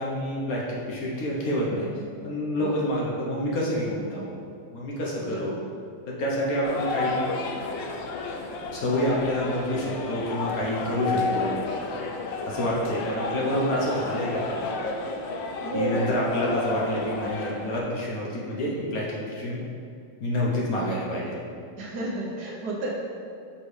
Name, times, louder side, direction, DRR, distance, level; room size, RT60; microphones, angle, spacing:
voice 1, 0.0-1.9 2.2-4.4 4.7-5.5 6.1-7.3 8.7-11.5 12.5-14.7 15.7-19.6 20.2-21.4, equal, 60° left, -4 dB, 1.2 m, -28 dB
voice 2, 5.2-5.6 13.1-13.2 15.6-16.1 21.8-22.9, right 2 dB, 65° right, -3 dB, 1.3 m, -31 dB
sound 1, 6.6-17.8, left 3 dB, 85° left, 1.3 m, -32 dB
6.4 x 4.9 x 3.2 m, 2.5 s
omnidirectional pair, 2.0 m